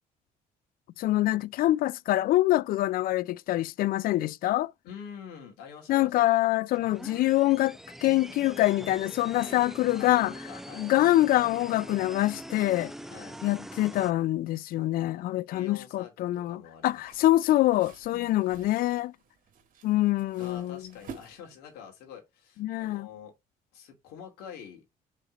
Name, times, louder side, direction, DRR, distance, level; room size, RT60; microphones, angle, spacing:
voice 1, 1.0-4.7 5.9-10.3 10.8-12.9 13.4-19.1 19.8-20.8 22.6-23.1, left 15 dB, 70° left, 0.4 m, -25 dB
voice 2, 4.8-6.3 9.3-9.6 10.0-10.9 13.1-13.4 15.5-17.0 18.1-18.4 20.4-23.3 23.7-24.9, left 8 dB, 85° left, 2.5 m, -46 dB
sound 1, 6.7-14.1, equal, ahead, 0.4 m, -43 dB
sound 2, 16.9-21.8, right 6 dB, 60° right, 1.7 m, -51 dB
5.1 x 4.2 x 5.1 m
supercardioid pair, 80°, 16 cm